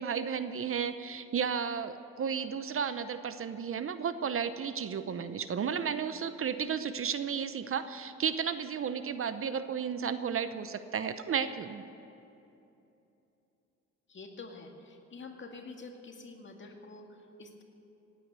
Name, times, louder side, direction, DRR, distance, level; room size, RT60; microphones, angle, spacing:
voice 1, 0.0-11.8, right 7 dB, 45° right, 12 dB, 0.7 m, -33 dB
voice 2, 14.1-17.6, left 3 dB, 40° left, 3 dB, 2.1 m, -47 dB
17.5 x 9.4 x 8.1 m, 2.8 s
cardioid pair, 90°, 30 cm